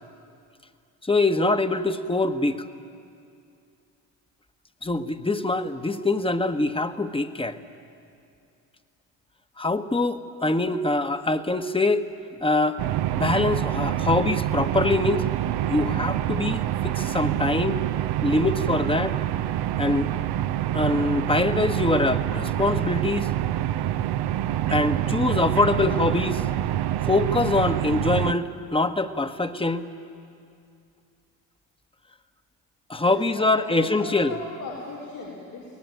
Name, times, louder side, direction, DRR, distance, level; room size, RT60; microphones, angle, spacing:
voice 1, 1.0-2.6 4.8-7.6 9.6-12.1 12.4-12.8 13.1-15.2 15.7-17.8 18.2-19.2 19.8-20.1 20.7-23.3 24.7-26.4 27.0-29.9 32.9-34.4, left 2 dB, 10° left, 10 dB, 1.3 m, -24 dB
sound 1, 12.8-28.3, right 12 dB, 60° right, 0.8 m, -26 dB
voice 2, 33.1-35.8, left 3 dB, 85° left, -8 dB, 4.9 m, -37 dB
22.5 x 18.5 x 9.2 m, 2.4 s
hypercardioid pair, 60°, 43 cm